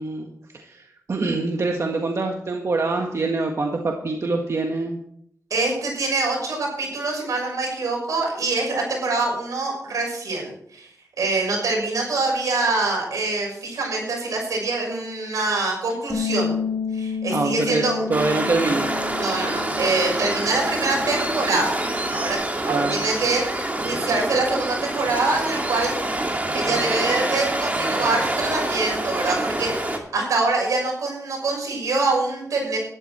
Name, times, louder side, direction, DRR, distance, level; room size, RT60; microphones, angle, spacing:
voice 1, 0.0-5.0 17.3-17.8 18.1-18.9 22.7-23.0, right 3 dB, 60° right, 2 dB, 1.6 m, -25 dB
voice 2, 5.5-10.9 11.2-16.5 16.9-18.0 19.1-21.7 22.1-22.4 22.6-26.2 26.5-32.8, right 3 dB, 90° right, -1 dB, 6.5 m, -25 dB
Bass guitar, 16.1-22.3, left 6 dB, 30° left, 3.2 m, -31 dB
Waves surf, 18.1-30.0, right 1 dB, 25° right, 2.5 m, -26 dB
13.0 x 11.5 x 4.4 m, 0.69 s
cardioid pair, 60°, 6 cm